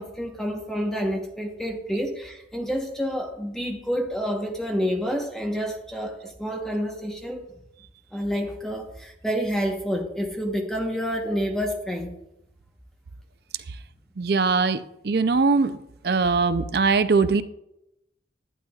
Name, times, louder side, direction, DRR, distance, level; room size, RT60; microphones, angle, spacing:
voice 1, 0.0-7.4 8.1-12.2, equal, 5° left, 1 dB, 1.0 m, -28 dB
voice 2, 14.2-15.8 16.0-17.4, right 4 dB, 60° right, 12 dB, 0.5 m, -21 dB
11.5 x 9.9 x 2.4 m, 0.82 s
head